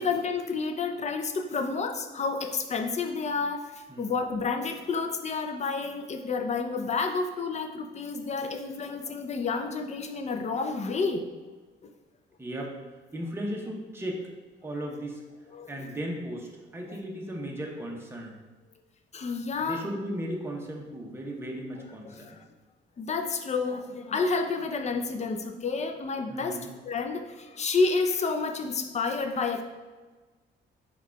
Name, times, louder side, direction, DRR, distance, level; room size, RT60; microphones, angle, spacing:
voice 1, 0.0-11.3 11.8-11.9 15.5-15.7 19.1-19.8 22.0-22.4 23.0-29.6, left 4 dB, 35° left, 5 dB, 0.5 m, -30 dB
voice 2, 12.4-12.8 13.1-14.2 14.6-15.2 15.7-18.3 19.6-22.4 26.3-26.7, equal, 10° right, -1 dB, 0.8 m, -36 dB
4.5 x 2.4 x 4.5 m, 1.3 s
cardioid pair, 90°, 20 cm